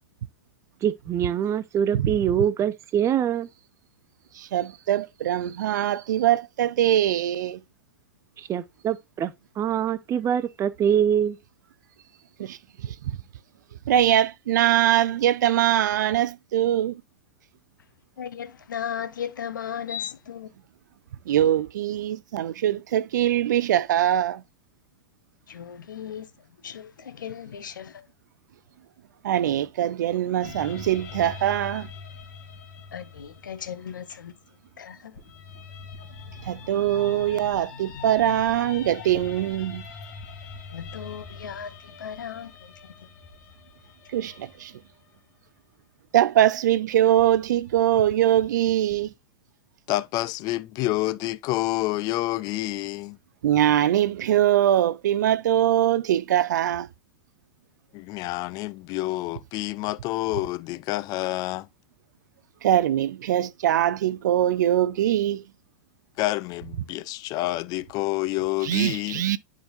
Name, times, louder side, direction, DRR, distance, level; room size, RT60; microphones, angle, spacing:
voice 1, 0.8-3.5 8.4-11.4, right 9 dB, 25° right, 0.7 m, -24 dB
voice 2, 4.4-7.6 12.4-12.6 12.8-12.9 13.9-17.0 21.3-24.4 29.2-31.9 36.5-39.8 44.1-44.7 46.1-49.1 53.4-56.9 62.6-65.4 68.6-69.4, right 12 dB, 65° right, 0.5 m, -22 dB
voice 3, 18.2-20.5 25.5-26.3 26.6-28.1 32.9-34.3 34.8-35.2 40.7-42.7 43.0-43.1, left 8 dB, 75° left, 0.9 m, -36 dB
sound 1, 30.4-34.6 35.2-45.2 47.2-49.1, left 5 dB, 55° left, 1.6 m, -43 dB
voice 4, 49.9-53.2 57.9-61.7 66.2-69.2, left 18 dB, 35° left, 0.5 m, -28 dB
10.0 x 3.9 x 2.5 m
figure-of-eight pair, 100°, 11 cm